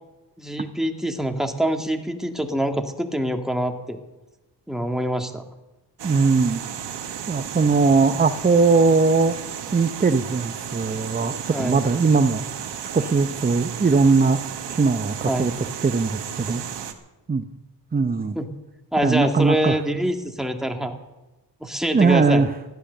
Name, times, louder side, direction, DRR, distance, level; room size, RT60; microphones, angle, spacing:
voice 1, 0.4-4.0 4.7-5.4 11.5-11.8 15.3-15.5 18.4-18.5 18.9-20.9 21.6-22.4, right 1 dB, ahead, 4 dB, 1.9 m, -25 dB
voice 2, 6.0-6.6 7.3-9.3 9.7-12.7 12.9-16.6 17.3-17.4 17.9-18.4 19.0-19.8 21.9-22.5, right 4 dB, 20° right, 9 dB, 0.8 m, -20 dB
sound 1, 6.0-16.9, right 8 dB, 75° right, 1.5 m, -34 dB
15.5 x 11.5 x 6.8 m, 1.0 s
cardioid pair, 80°, 42 cm